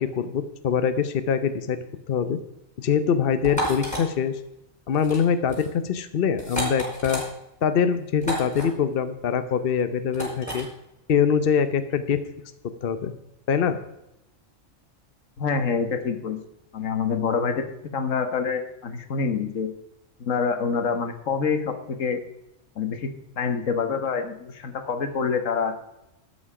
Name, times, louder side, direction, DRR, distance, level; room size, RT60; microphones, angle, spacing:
voice 1, 0.0-1.8 2.1-2.4 2.8-4.3 4.9-7.2 7.6-10.7 11.1-12.2 12.8-13.1 13.5-13.8, left 7 dB, 50° left, 10 dB, 0.9 m, -23 dB
sound 1, 3.4-4.0 4.9-5.2 5.5-5.7 6.4-7.3 8.2-8.6 10.1-10.6, equal, 5° left, 5.2 m, -30 dB
voice 2, 15.4-16.4 16.7-17.6 17.9-19.7 20.2-22.2 22.8-23.1 23.4-25.8, left 5 dB, 75° left, 8 dB, 1.6 m, -26 dB
13.0 x 8.7 x 4.9 m, 0.86 s
omnidirectional pair, 1.3 m